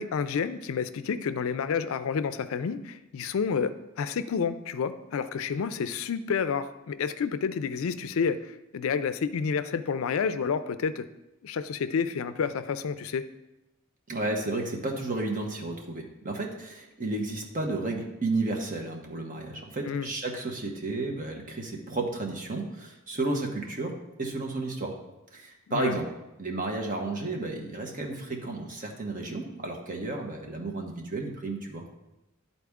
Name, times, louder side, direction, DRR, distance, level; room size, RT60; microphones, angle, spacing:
voice 1, 0.0-11.1 11.4-13.3 19.9-20.1 25.7-26.0, left 6 dB, 75° left, 12 dB, 0.4 m, -29 dB
voice 2, 14.1-23.9 24.2-24.9 25.3-26.1 26.4-31.8, right 2 dB, 40° right, 2 dB, 1.0 m, -32 dB
11.0 x 4.2 x 3.5 m, 0.96 s
head